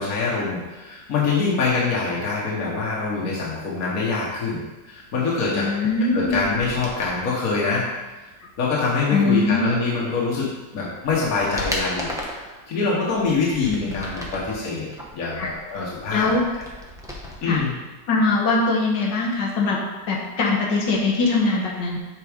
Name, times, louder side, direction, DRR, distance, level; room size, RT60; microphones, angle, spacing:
voice 1, 0.0-5.7 6.1-7.9 8.6-14.9 15.1-16.4 17.4-17.7, left 4 dB, 55° left, -5 dB, 1.6 m, -24 dB
voice 2, 5.5-6.4 9.1-9.6 13.7-13.9 15.4-15.5 16.1-16.4 17.5-17.6 18.1-19.8 20.1-22.0, left 3 dB, 80° left, -1 dB, 1.6 m, -22 dB
sound 1, 6.1-7.2 10.2-10.3 10.8-12.5 13.0-14.5 14.9-17.6 17.9-18.0, left 1 dB, 5° right, 0.5 m, -35 dB
7.1 x 4.1 x 5.0 m, 1.2 s
omnidirectional pair, 1.9 m